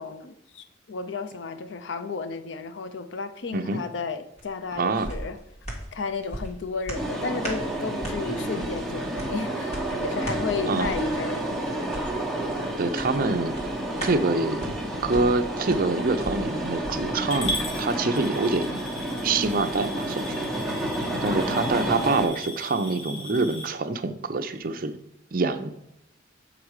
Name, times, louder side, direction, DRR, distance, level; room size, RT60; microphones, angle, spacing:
voice 1, 0.0-5.4 5.9-11.6 21.3-21.8, left 4 dB, 65° left, 10 dB, 0.5 m, -33 dB
sound 1, 4.4-18.0 18.4-18.5, right 1 dB, 35° left, 1.6 m, -40 dB
voice 2, 4.8-5.1 10.7-10.9 12.8-13.5 14.0-14.7 15.0-18.8 19.2-20.9 21.2-25.0 25.3-25.7, right 3 dB, 45° right, 8 dB, 0.6 m, -26 dB
sound 2, 6.9-22.3, right 1 dB, ahead, 1.1 m, -30 dB
Coin (dropping) / Glass, 17.3-23.7, left 1 dB, 90° left, 2.3 m, -37 dB
7.3 x 5.0 x 4.8 m, 0.81 s
head